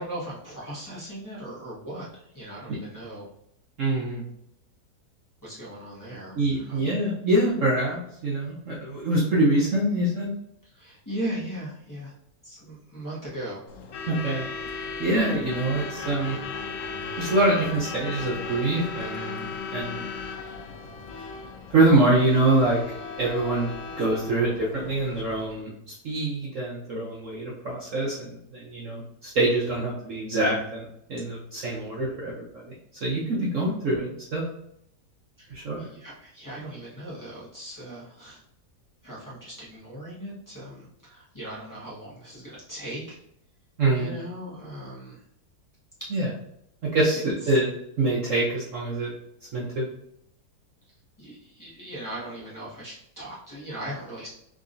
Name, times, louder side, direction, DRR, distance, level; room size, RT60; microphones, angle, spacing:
voice 1, 0.0-3.3 5.4-6.9 10.6-12.1 12.4-13.6 35.4-38.4 39.0-43.2 43.9-45.2 47.4-47.6 51.2-54.3, right 1 dB, 10° left, -10 dB, 1.4 m, -38 dB
voice 2, 3.8-4.2 6.3-10.3 14.1-14.5 15.0-16.4 17.2-20.0 21.7-22.8 23.2-25.7 26.0-32.7 33.0-34.5 35.5-35.9 43.8-44.1 46.1-46.3 46.8-47.7 48.0-49.1 49.5-49.8, right 2 dB, 55° right, -4 dB, 1.0 m, -25 dB
Truck / Alarm, 13.7-25.6, left 4 dB, 65° left, 0.8 m, -36 dB
3.8 x 3.5 x 2.6 m, 0.75 s
omnidirectional pair, 1.9 m